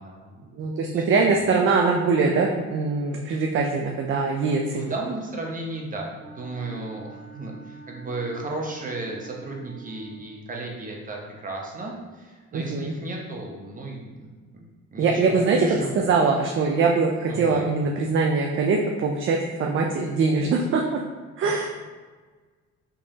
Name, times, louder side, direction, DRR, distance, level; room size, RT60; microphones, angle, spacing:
voice 1, 0.0-0.5 0.9-1.2 4.7-14.6 14.9-16.1 17.3-17.6 21.4-21.7, right 2 dB, 25° right, -1 dB, 0.8 m, -34 dB
voice 2, 0.5-4.9 12.5-12.9 15.0-15.6 16.0-21.0 21.4-21.7, right 4 dB, 45° right, 1 dB, 0.4 m, -22 dB
Wind instrument woodwind instrument, 6.2-10.4, right 4 dB, 25° left, 1.5 m, -46 dB
3.6 x 3.0 x 2.8 m, 1.4 s
cardioid pair, 90°, 30 cm